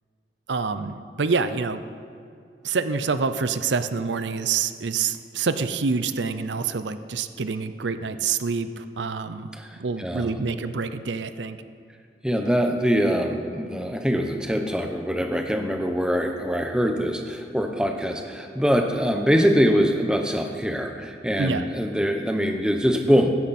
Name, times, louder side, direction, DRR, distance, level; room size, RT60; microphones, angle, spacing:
voice 1, 0.5-1.8 2.6-9.5 9.8-11.6 21.4-21.6, right 5 dB, 90° right, 11 dB, 0.6 m, -27 dB
voice 2, 10.0-10.3 12.2-23.3, equal, 5° right, 4 dB, 0.9 m, -23 dB
15.5 x 12.5 x 4.3 m, 2.5 s
head